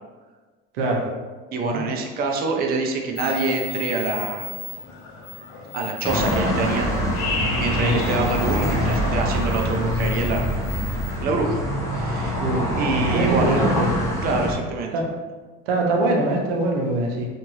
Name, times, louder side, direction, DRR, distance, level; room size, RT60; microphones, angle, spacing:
voice 1, 0.7-1.0 1.6-1.8 7.8-8.0 12.4-13.9 14.3-14.4 14.9-15.1 15.7-17.3, right 2 dB, 85° right, 0 dB, 0.7 m, -23 dB
voice 2, 1.5-4.5 5.7-6.9 7.6-10.6 11.2-11.6 11.9-12.4 12.8-13.6 14.2-14.9, right 3 dB, 35° right, 2 dB, 0.5 m, -26 dB
sound 1, 3.2-11.1, left 4 dB, 65° left, 0.7 m, -34 dB
sound 2, 6.0-14.5, equal, 10° left, 0.9 m, -24 dB
2.8 x 2.5 x 2.9 m, 1.3 s
supercardioid pair, 95°, 29 cm